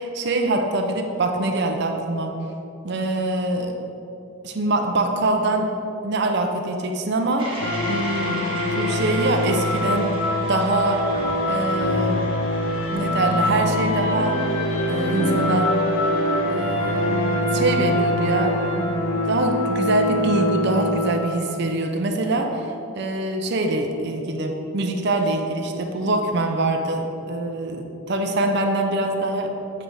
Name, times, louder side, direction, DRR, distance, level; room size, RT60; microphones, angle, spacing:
voice 1, 0.0-2.4 2.8-3.7 4.4-5.7 6.0-7.6 7.9-10.2 10.5-11.1 11.5-12.3 12.9-14.4 14.9-15.7 16.4-18.9 19.3-29.5, right 2 dB, 50° right, 3 dB, 0.5 m, -24 dB
sound 1, 7.4-17.4, right 1 dB, 25° right, 1.4 m, -38 dB
sound 2, 7.6-21.5, left 1 dB, 85° left, 0.8 m, -24 dB
8.4 x 3.3 x 5.0 m, 2.9 s
head